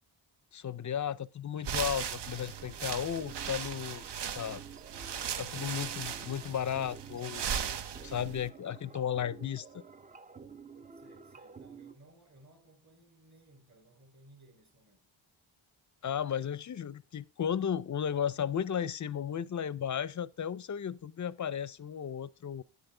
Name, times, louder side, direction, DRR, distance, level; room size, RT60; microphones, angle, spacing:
voice 1, 0.5-4.0 4.4-4.6 5.4-7.5 8.0-9.8 16.0-22.6, left 8 dB, 40° left, 0.5 m, -34 dB
sound 1, 1.6-8.5, right 8 dB, 60° right, 0.7 m, -38 dB
sound 2, 2.2-12.0, right 5 dB, 20° right, 0.4 m, -51 dB
voice 2, 10.9-15.1, right 2 dB, 35° right, 3.0 m, -60 dB
9.6 x 7.9 x 3.3 m
cardioid pair, 70°, 47 cm